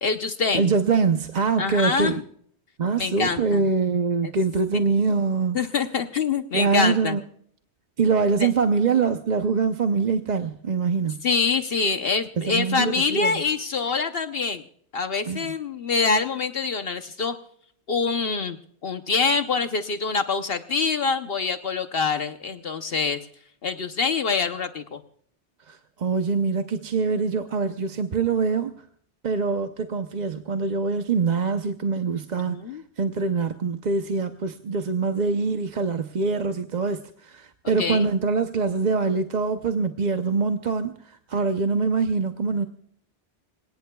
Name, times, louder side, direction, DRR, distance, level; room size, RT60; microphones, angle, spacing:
voice 1, 0.0-0.7 1.6-2.2 3.0-3.7 4.7-4.8 5.5-7.2 8.4-8.5 11.2-14.6 14.9-17.3 17.9-18.6 18.8-23.2 23.6-25.0 32.5-32.8 37.8-38.1, left 4 dB, 60° left, 8 dB, 1.1 m, -25 dB
voice 2, 0.5-2.2 2.8-5.6 6.5-7.2 8.0-11.2 12.4-13.3 15.3-15.5 25.7-28.7 29.2-32.6 33.0-42.7, right 4 dB, 45° right, 7 dB, 0.8 m, -24 dB
26.5 x 17.5 x 2.3 m, 0.62 s
omnidirectional pair, 1.1 m